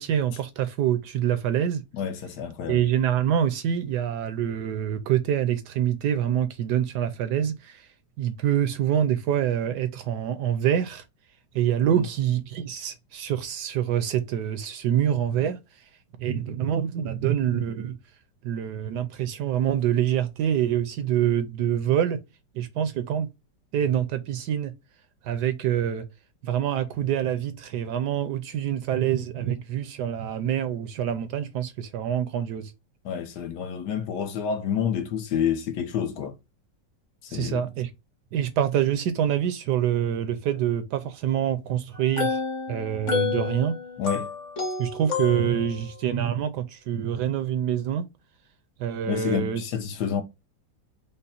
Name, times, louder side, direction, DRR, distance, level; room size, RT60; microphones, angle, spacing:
voice 1, 0.0-1.8 2.7-7.9 8.2-11.0 11.5-15.8 16.2-18.0 18.4-22.2 22.5-23.3 23.7-24.7 25.2-26.0 26.4-32.7 37.3-37.9 38.3-42.4 42.7-43.7 44.8-48.1 48.8-49.6, right 10 dB, 75° right, 1.1 m, -26 dB
voice 2, 1.9-2.8 33.0-36.4 37.2-37.6 44.0-44.3 49.1-50.2, left 8 dB, 70° left, 1.2 m, -28 dB
sound 1, 41.9-45.9, left 5 dB, 45° left, 1.3 m, -30 dB
5.3 x 2.0 x 4.1 m
omnidirectional pair, 2.0 m